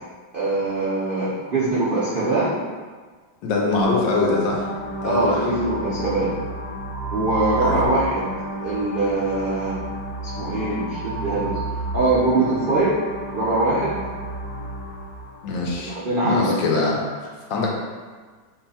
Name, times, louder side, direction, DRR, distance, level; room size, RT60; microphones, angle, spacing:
voice 1, 0.3-2.6 5.0-6.3 7.1-8.3 8.6-9.8 10.2-11.6 11.9-12.9 13.3-14.0 15.8-16.6, right 2 dB, 80° right, -9 dB, 0.4 m, -22 dB
voice 2, 3.4-4.7 5.0-5.6 7.6-7.9 15.4-16.0 16.2-17.0 17.2-17.7, left 3 dB, 85° left, -2 dB, 1.4 m, -23 dB
sound 1, 3.7-15.7, right 1 dB, 65° left, 1.0 m, -31 dB
3.2 x 2.4 x 4.0 m, 1.4 s
omnidirectional pair, 2.0 m